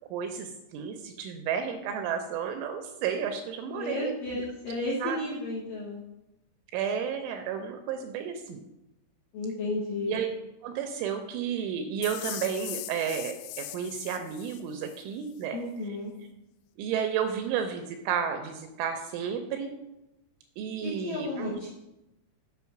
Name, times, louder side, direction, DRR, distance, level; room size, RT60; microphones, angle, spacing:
voice 1, 0.1-4.4 5.0-5.2 6.7-8.6 10.1-10.3 10.6-15.6 16.8-19.7 20.6-21.7, right 7 dB, 80° right, 5 dB, 2.9 m, -32 dB
voice 2, 3.7-6.0 9.3-10.2 15.5-16.1 20.8-21.7, left 2 dB, 65° left, -6 dB, 2.3 m, -33 dB
sound 1, 12.0-15.0, left 15 dB, 85° left, 2.8 m, -40 dB
8.3 x 6.0 x 5.8 m, 0.93 s
omnidirectional pair, 6.0 m